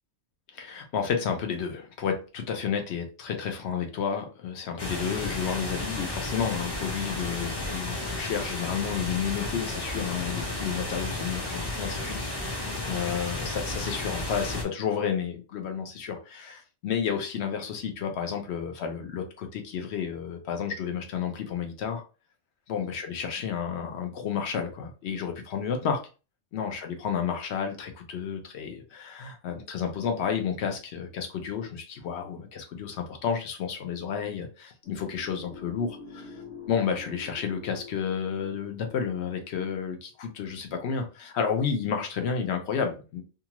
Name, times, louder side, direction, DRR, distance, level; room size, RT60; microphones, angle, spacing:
voice 1, 0.5-22.0 22.7-26.0 26.5-36.3 36.7-43.2, left 7 dB, 65° left, 0.9 m, -31 dB
sound 1, 4.8-14.6, left 2 dB, 25° left, 0.6 m, -33 dB
sound 2, 34.8-39.9, left 5 dB, 85° left, 1.2 m, -46 dB
2.8 x 2.4 x 2.9 m
omnidirectional pair, 1.3 m